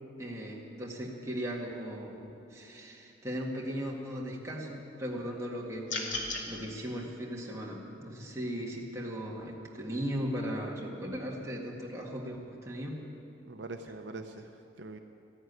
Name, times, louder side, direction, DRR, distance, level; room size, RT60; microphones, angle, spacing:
voice 1, 0.2-13.0, equal, 15° right, -3 dB, 1.9 m, -37 dB
sound 1, 5.9-6.4, left 2 dB, 80° left, 2.2 m, -34 dB
voice 2, 13.5-15.0, right 3 dB, 65° right, 6 dB, 0.7 m, -43 dB
14.0 x 11.0 x 9.6 m, 2.8 s
head